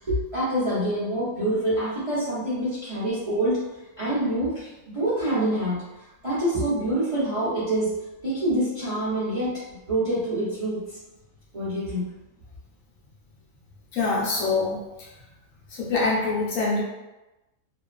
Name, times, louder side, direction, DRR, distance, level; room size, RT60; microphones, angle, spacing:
voice 1, 0.1-3.6 4.0-5.8 6.2-8.0 8.2-9.6 9.9-10.8 11.5-12.1, right 1 dB, 35° right, -11 dB, 0.6 m, -26 dB
voice 2, 13.9-15.1 15.7-16.8, left 3 dB, 70° left, -5 dB, 1.0 m, -25 dB
2.5 x 2.3 x 2.3 m, 1.0 s
omnidirectional pair, 1.5 m